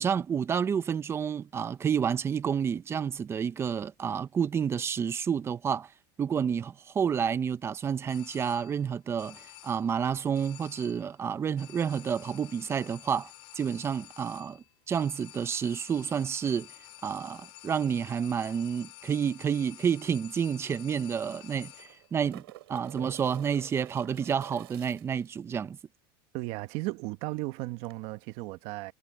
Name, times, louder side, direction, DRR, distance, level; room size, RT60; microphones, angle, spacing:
voice 1, 0.0-5.9 6.2-16.7 17.0-22.4 22.7-25.8, right 7 dB, 20° right, 0.8 m, -30 dB
sound 1, 8.1-8.9 9.2-10.0 10.3-11.2 11.6-22.1, left 16 dB, 50° left, 2.5 m, -50 dB
sound 2, 20.1-20.2 20.4-20.5 21.6-25.3 27.8-27.9, right 17 dB, 85° right, 6.3 m, -49 dB
voice 2, 26.3-28.9, right 20 dB, 55° right, 1.2 m, -35 dB
supercardioid pair, 140°, 13 cm